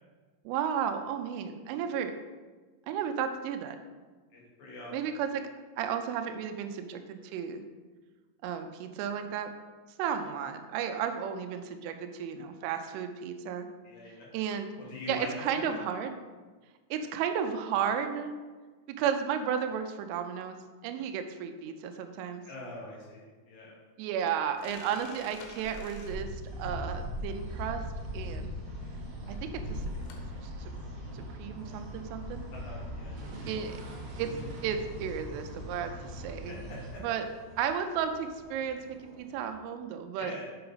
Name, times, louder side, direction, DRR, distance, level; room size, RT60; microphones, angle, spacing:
voice 1, 0.5-2.2 2.9-3.8 4.9-5.4 5.8-7.6 8.4-9.5 10.0-13.7 14.3-14.7 15.1-16.2 16.9-18.3 18.9-22.5 24.0-27.8 28.1-28.5 29.3-29.8 30.6-30.7 31.1-32.5 33.5-33.8 34.2-34.4 34.6-36.7 37.0-37.3 37.6-40.4, right 8 dB, 85° right, 7 dB, 3.1 m, -33 dB
voice 2, 4.3-4.9 13.8-14.3 14.8-15.8 22.4-23.7 32.5-33.1 36.9-37.0 40.2-40.4, left 1 dB, 65° left, -4 dB, 2.6 m, -43 dB
sound 1, 24.6-26.3 28.9-30.4, equal, 85° left, 3.5 m, -43 dB
sound 2, 26.0-36.9, equal, 45° right, 1.9 m, -40 dB
sound 3, 33.2-39.5, right 2 dB, 70° right, 2.6 m, -48 dB
7.6 x 5.7 x 4.0 m, 1.4 s
omnidirectional pair, 5.7 m